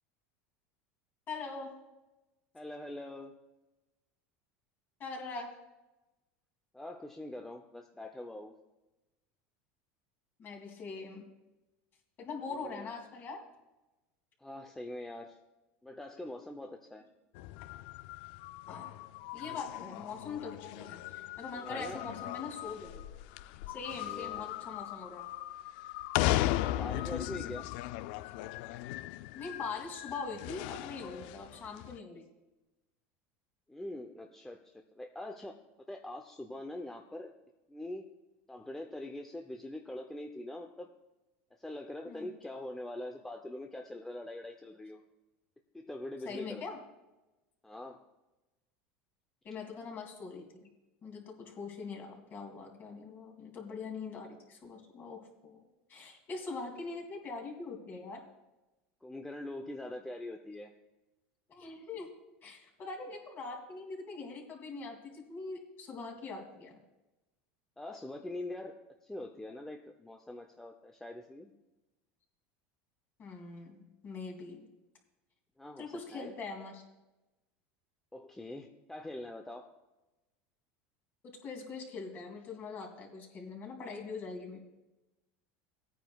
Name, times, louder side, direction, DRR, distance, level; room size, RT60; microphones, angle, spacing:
voice 1, 1.3-1.8 5.0-5.6 10.4-11.2 12.2-13.4 18.7-19.0 19.3-23.1 23.7-25.3 29.3-32.3 42.1-42.3 46.2-46.8 49.4-50.7 51.0-55.6 55.9-58.3 61.5-62.1 62.4-66.8 73.2-74.7 75.8-76.8 81.2-84.6, left 4 dB, 35° left, 2 dB, 2.6 m, -42 dB
voice 2, 2.5-3.4 6.7-8.5 12.5-12.9 14.4-15.4 15.8-17.0 21.6-22.0 24.0-24.5 26.6-27.7 33.7-35.6 35.9-37.3 37.7-38.1 38.5-40.9 41.6-45.0 45.7-46.8 47.6-48.0 59.0-60.7 67.8-68.7 69.0-71.5 75.6-76.3 78.1-79.7, left 1 dB, 5° left, 3 dB, 0.6 m, -43 dB
sound 1, 17.3-32.0, left 15 dB, 70° left, 0.3 m, -37 dB
18.5 x 9.2 x 2.3 m, 1.0 s
supercardioid pair, 130°, 6 cm